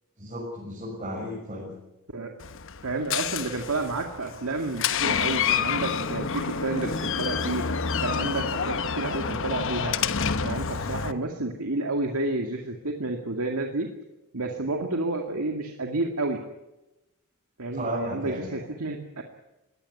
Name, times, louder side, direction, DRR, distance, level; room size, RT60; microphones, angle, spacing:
voice 1, 0.2-1.7 17.7-18.6, equal, 30° right, -5 dB, 6.5 m, -34 dB
Door, 2.4-11.1, left 6 dB, 60° left, 1.0 m, -28 dB
voice 2, 2.8-7.7 8.0-10.0 10.4-13.9 14.3-16.4 17.6-19.2, right 2 dB, 85° right, 3 dB, 2.2 m, -30 dB
21.5 x 17.5 x 8.5 m, 1.0 s
head